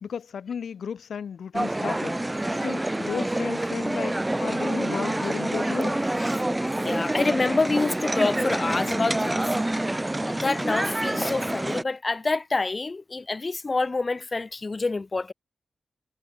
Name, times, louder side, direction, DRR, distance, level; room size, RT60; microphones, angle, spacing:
voice 1, 0.0-6.0, left 7 dB, 85° left, 3.3 m, -34 dB
sound 1, 1.5-11.8, right 1 dB, 15° right, 0.4 m, -27 dB
voice 2, 6.8-9.4 10.3-15.3, left 3 dB, 35° left, 0.8 m, -27 dB
wide cardioid pair, 95°, 0 cm